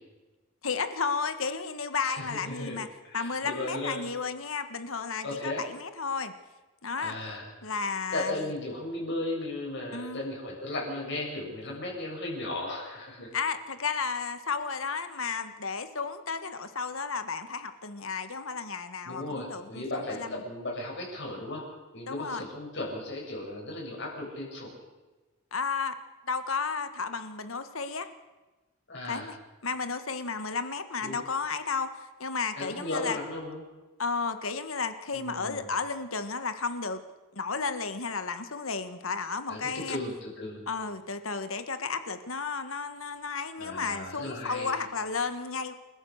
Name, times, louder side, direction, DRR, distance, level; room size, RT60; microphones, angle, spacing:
voice 1, 0.6-2.9 3.1-6.3 6.8-7.1 7.6-8.5 9.9-10.2 11.7-11.8 13.3-20.4 22.1-22.4 25.5-26.0 26.2-28.1 29.0-29.4 29.6-33.2 34.0-37.0 37.3-40.0 40.7-45.7, left 5 dB, 75° left, 10 dB, 1.6 m, -33 dB
voice 2, 2.0-2.8 3.0-4.0 5.2-5.6 7.0-7.7 8.1-13.3 19.0-21.6 21.9-24.8 28.9-29.3 31.0-31.2 32.6-33.6 35.1-35.7 39.5-40.6 43.6-44.7, left 2 dB, 60° left, -2 dB, 7.7 m, -36 dB
29.0 x 14.5 x 6.6 m, 1.2 s
head